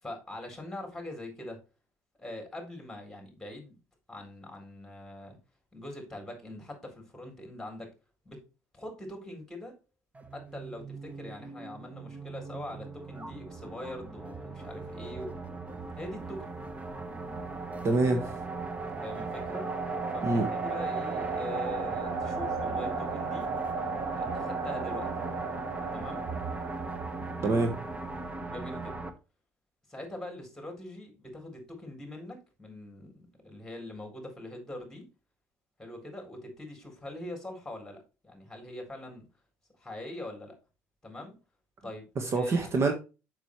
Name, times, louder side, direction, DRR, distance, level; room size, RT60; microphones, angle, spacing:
voice 1, 0.0-1.6 2.2-3.8 4.1-5.4 5.7-7.9 8.2-8.4 8.7-9.7 10.3-15.3 16.0-16.5 19.0-19.7 20.1-20.3 20.5-23.5 24.1-25.1 25.9-26.3 28.4-29.0 29.9-35.1 35.8-39.2 39.8-40.5 41.0-41.4 41.8-42.1 42.3-42.6, left 1 dB, 5° left, 3 dB, 4.1 m, -42 dB
sound 1, 10.1-29.1, right 3 dB, 20° right, 1.2 m, -39 dB
sound 2, 16.8-27.7, right 4 dB, 70° right, 1.4 m, -36 dB
voice 2, 17.8-18.3 20.2-20.5 27.4-27.7 42.2-42.9, right 3 dB, 40° right, 5 dB, 1.5 m, -25 dB
6.9 x 6.3 x 3.2 m, 0.30 s
supercardioid pair, 85°, 7 cm